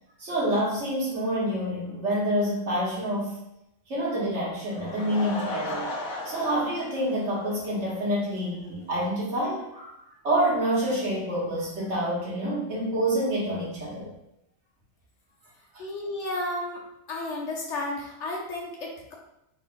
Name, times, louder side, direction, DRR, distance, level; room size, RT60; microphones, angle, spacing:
voice 1, 0.2-3.4 3.9-5.9 6.2-9.9 10.2-14.1 15.7-15.8, right 1 dB, 60° right, -6 dB, 1.4 m, -27 dB
Laughter / Crowd, 4.6-8.0 8.4-8.5 9.0-9.1 9.3-9.4, left 2 dB, 85° left, 1.1 m, -36 dB
voice 2, 15.8-16.8 17.1-19.1, left 2 dB, 60° left, -3 dB, 1.0 m, -32 dB
3.8 x 3.0 x 2.5 m, 0.83 s
omnidirectional pair, 1.4 m